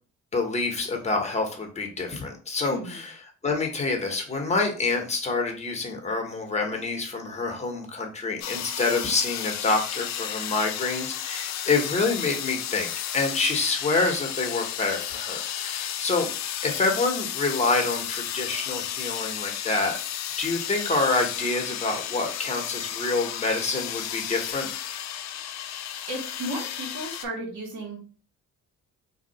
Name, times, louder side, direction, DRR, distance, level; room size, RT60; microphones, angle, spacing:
voice 1, 0.3-3.1 3.4-16.3 16.6-19.9 20.4-24.7, left 3 dB, 20° left, 3 dB, 0.9 m, -27 dB
voice 2, 2.7-3.0 26.1-28.0, right 1 dB, 70° right, -3 dB, 1.3 m, -34 dB
sound 1, 8.4-27.2, left 10 dB, 65° left, 0.4 m, -33 dB
2.7 x 2.3 x 4.0 m, 0.39 s
cardioid pair, 90°, 30 cm